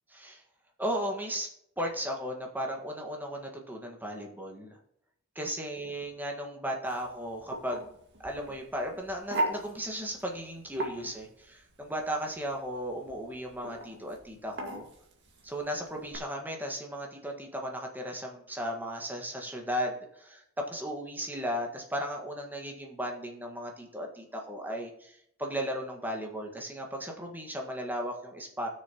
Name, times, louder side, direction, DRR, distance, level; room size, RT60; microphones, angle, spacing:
voice 1, 0.8-1.5 1.8-4.8 5.3-8.0 8.2-14.9 15.4-28.7, equal, 10° right, 1 dB, 1.6 m, -36 dB
sound 1, 6.9-16.2, right 1 dB, 55° right, 1.9 m, -39 dB
17.5 x 6.6 x 3.0 m, 0.73 s
head